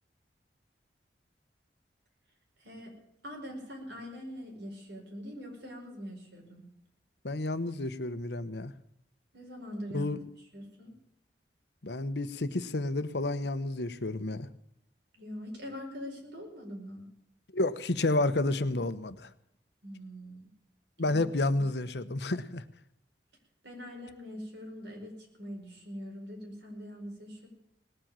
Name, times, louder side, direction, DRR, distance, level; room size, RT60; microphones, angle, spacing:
voice 1, 2.6-2.9 3.2-6.6 9.3-10.2 10.5-10.9 15.1-17.0 19.8-20.5 21.0-21.2 23.6-27.5, equal, 80° right, 1 dB, 5.0 m, -43 dB
voice 2, 7.2-8.7 9.9-10.2 11.8-14.5 17.5-19.3 21.0-22.6, left 2 dB, 75° left, 12 dB, 1.0 m, -30 dB
19.0 x 7.8 x 8.8 m, 0.77 s
head